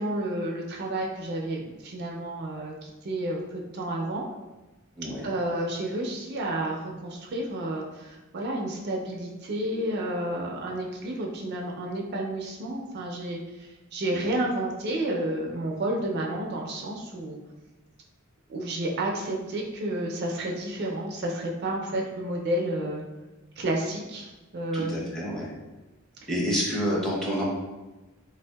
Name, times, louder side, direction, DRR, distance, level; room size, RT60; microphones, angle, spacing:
voice 1, 0.0-4.2 5.2-17.4 18.5-23.0 23.6-25.1, right 1 dB, 55° right, 0 dB, 0.4 m, -31 dB
voice 2, 5.0-5.3 24.7-25.5 26.3-27.4, equal, ahead, -5 dB, 0.6 m, -28 dB
3.3 x 2.6 x 2.2 m, 1.1 s
head